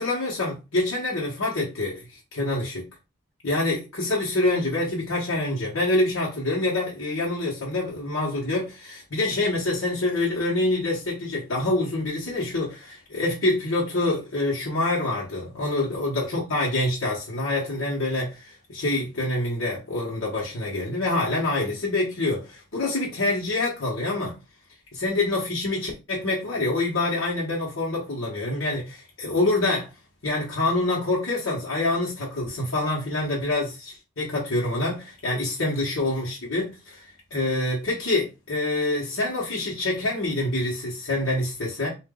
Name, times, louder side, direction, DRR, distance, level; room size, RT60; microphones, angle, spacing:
voice 1, 0.0-2.9 3.4-24.3 24.9-29.9 30.2-41.9, left 2 dB, 80° left, 1.2 m, -26 dB
3.9 x 2.6 x 3.7 m
head